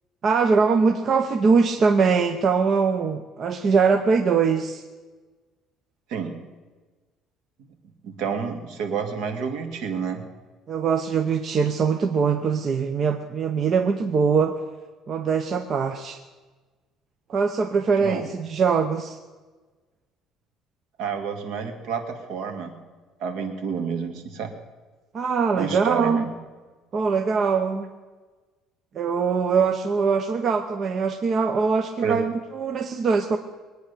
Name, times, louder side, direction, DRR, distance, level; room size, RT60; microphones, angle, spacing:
voice 1, 0.2-4.8 10.7-14.5 15.1-16.2 17.3-19.2 25.1-26.2 26.9-27.9 28.9-33.4, right 5 dB, 35° right, 7 dB, 0.7 m, -22 dB
voice 2, 8.0-10.2 18.0-18.2 21.0-22.7 23.2-24.5 25.6-26.3 32.0-32.2, right 6 dB, 65° right, 5 dB, 2.2 m, -29 dB
22.0 x 9.3 x 6.8 m, 1.3 s
cardioid pair, 155°, 0 cm